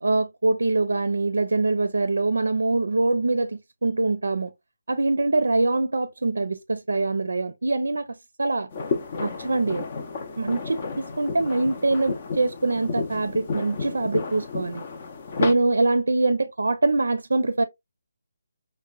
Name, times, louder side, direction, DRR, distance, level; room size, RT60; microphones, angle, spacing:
voice 1, 0.0-4.5 4.9-8.7 9.2-9.9 10.4-14.8 15.4-17.6, right 2 dB, 75° right, 0.4 m, -24 dB
sound 1, 8.7-15.5, left 5 dB, 40° left, 0.5 m, -32 dB
5.3 x 2.1 x 2.3 m
figure-of-eight pair, 150°, 0 cm